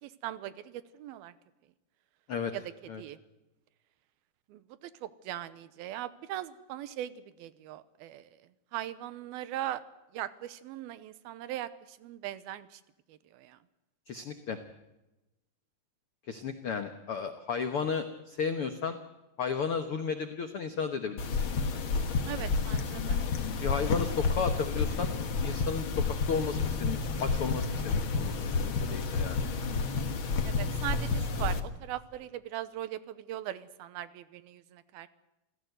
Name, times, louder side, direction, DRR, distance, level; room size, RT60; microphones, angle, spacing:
voice 1, 0.0-1.3 2.5-2.6 3.0-3.2 4.5-8.4 8.7-9.8 10.1-12.8 13.1-13.6 22.3-23.2 30.4-35.1, right 13 dB, 80° right, 15 dB, 2.8 m, -40 dB
voice 2, 14.1-14.6 16.3-19.0 19.4-21.2 23.6-25.1 25.4-29.4, left 6 dB, 75° left, 7 dB, 1.3 m, -33 dB
sound 1, 21.2-31.6, left 4 dB, 50° left, 1.6 m, -30 dB
28.0 x 16.0 x 8.0 m, 0.98 s
omnidirectional pair, 4.4 m